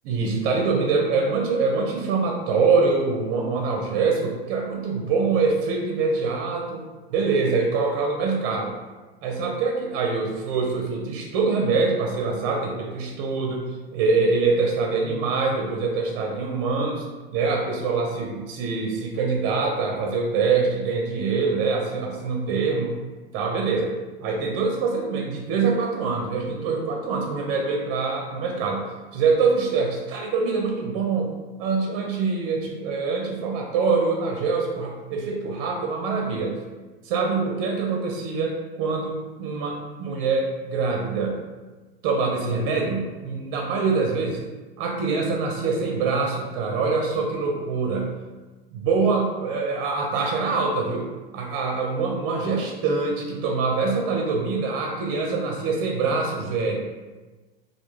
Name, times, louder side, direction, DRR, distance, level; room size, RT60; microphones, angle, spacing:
voice 1, 0.0-6.8 7.1-8.7 9.2-17.1 17.3-22.9 23.3-23.9 24.2-28.8 29.1-36.6 37.0-41.4 42.0-44.4 44.8-48.1 48.7-51.1 51.3-56.8, right 4 dB, 45° right, 0 dB, 0.5 m, -24 dB
2.2 x 2.1 x 3.0 m, 1.2 s
hypercardioid pair, 100°, 30 cm